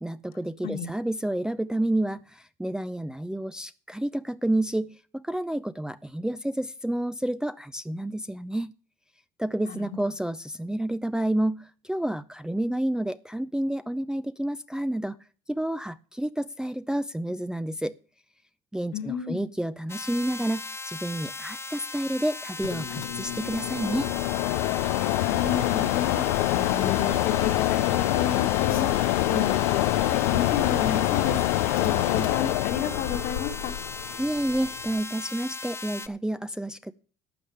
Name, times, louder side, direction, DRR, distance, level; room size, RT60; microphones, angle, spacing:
voice 1, 0.0-8.7 9.4-15.2 15.5-17.9 18.7-24.1 34.2-36.9, right 1 dB, 5° right, 11 dB, 0.5 m, -29 dB
voice 2, 18.9-19.4 25.3-26.2 26.5-28.9 29.2-31.4 31.8-33.7, left 8 dB, 60° left, 6 dB, 1.9 m, -31 dB
sound 1, 19.9-36.1, left 3 dB, 15° left, 0.9 m, -38 dB
Mechanisms, 22.6-35.0, left 16 dB, 90° left, 0.6 m, -26 dB
12.0 x 5.1 x 8.6 m, 0.40 s
supercardioid pair, 80°, 17 cm